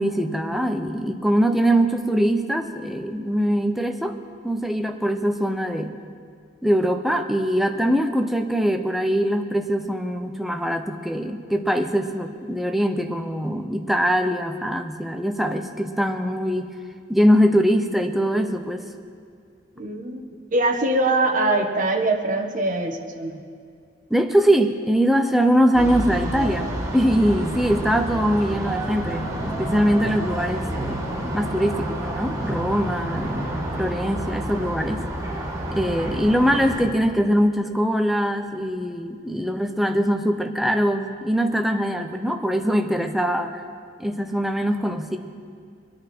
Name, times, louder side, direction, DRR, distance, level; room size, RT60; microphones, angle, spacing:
voice 1, 0.0-4.2 4.4-6.0 6.6-16.7 17.1-18.9 24.1-31.0 31.3-33.5 33.8-35.0 35.7-43.6 44.0-45.2, equal, ahead, 5 dB, 0.7 m, -22 dB
voice 2, 19.8-20.2 20.5-23.4, right 2 dB, 45° right, 2 dB, 1.4 m, -22 dB
sound 1, 25.7-36.8, right 1 dB, 20° right, 2.0 m, -29 dB
23.5 x 10.5 x 4.5 m, 2.3 s
head